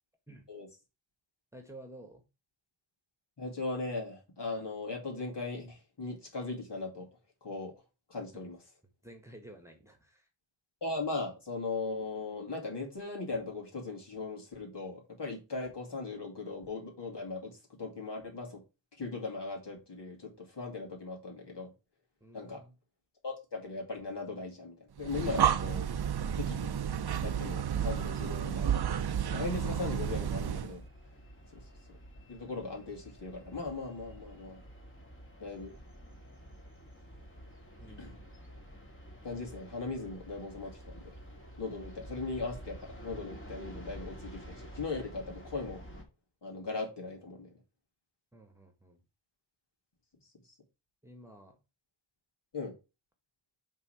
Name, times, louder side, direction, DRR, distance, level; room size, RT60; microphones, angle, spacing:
voice 1, 1.5-2.2 8.3-8.5 9.0-10.3 22.2-22.8 37.8-38.3 48.3-49.0 51.0-51.6, right 1 dB, 5° right, 1.4 m, -52 dB
voice 2, 3.4-7.1 7.4-7.7 8.1-8.6 10.8-18.6 19.0-21.7 22.3-22.6 23.2-25.9 26.4-26.7 27.2-28.8 29.3-30.8 31.5-31.6 32.3-34.6 35.4-35.7 38.0-38.2 39.2-41.1 41.6-42.8 43.0-45.8 46.4-47.5 52.5-52.7, left 3 dB, 65° left, 2.5 m, -38 dB
Breathing, 25.0-30.8, right 8 dB, 60° right, 0.5 m, -31 dB
sound 1, 27.8-46.0, equal, 25° left, 2.0 m, -50 dB
5.6 x 3.8 x 5.7 m
wide cardioid pair, 80°, 45 cm